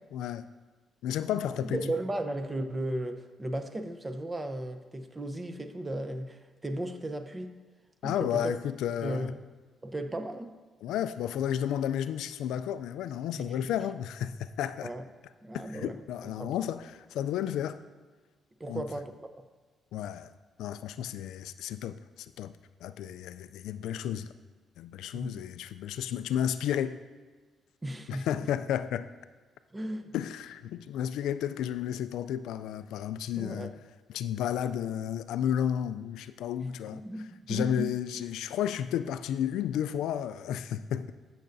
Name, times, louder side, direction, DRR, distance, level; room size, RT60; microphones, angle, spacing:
voice 1, 0.1-0.5 1.0-1.8 8.0-9.3 10.8-14.9 15.5-17.8 18.7-18.8 19.9-20.3 20.6-22.5 22.8-24.3 24.8-27.0 28.1-29.1 30.1-33.7 34.1-37.0 37.5-41.1, left 10 dB, 85° left, 12 dB, 0.3 m, -32 dB
voice 2, 1.6-7.5 8.0-8.5 9.0-9.5 9.8-10.5 13.4-13.5 14.8-15.0 15.4-16.0 16.4-16.5 18.6-19.4 25.1-25.4 27.8-28.3 29.7-30.1 33.3-33.7 36.6-37.9, right 1 dB, 20° right, 8 dB, 0.7 m, -35 dB
13.5 x 6.6 x 2.6 m, 1.3 s
cardioid pair, 90°, 0 cm